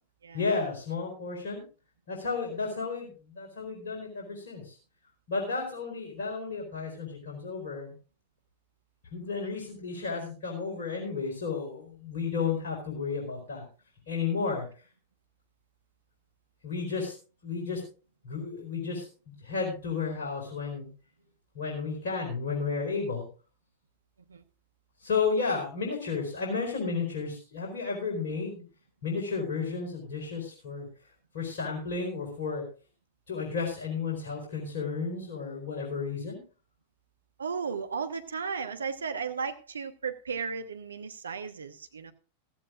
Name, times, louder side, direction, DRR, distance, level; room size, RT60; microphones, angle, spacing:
voice 1, 0.3-1.6 2.1-4.7 5.3-7.9 9.1-13.6 14.1-14.7 16.6-17.1 17.4-17.8 18.2-20.9 21.5-23.2 25.0-28.6 29.0-30.9 31.3-32.6 33.3-36.4, left 5 dB, 60° left, -1 dB, 4.5 m, -32 dB
voice 2, 37.4-42.1, right 5 dB, 70° right, 9 dB, 1.2 m, -35 dB
15.5 x 14.5 x 2.5 m, 0.35 s
figure-of-eight pair, 90°, 0 cm